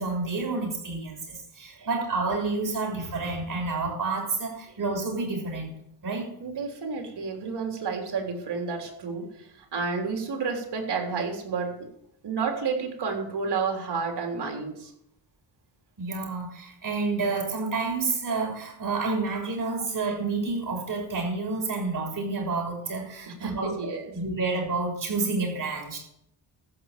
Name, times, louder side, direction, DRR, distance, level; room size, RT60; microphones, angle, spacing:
voice 1, 0.0-5.7 6.0-6.3 16.0-26.0, right 3 dB, 45° right, 0 dB, 6.5 m, -29 dB
voice 2, 6.4-11.7 12.2-14.9 23.3-24.1, right 5 dB, 60° right, 2 dB, 3.7 m, -31 dB
15.0 x 6.5 x 7.6 m, 0.75 s
cardioid pair, 95°, 44 cm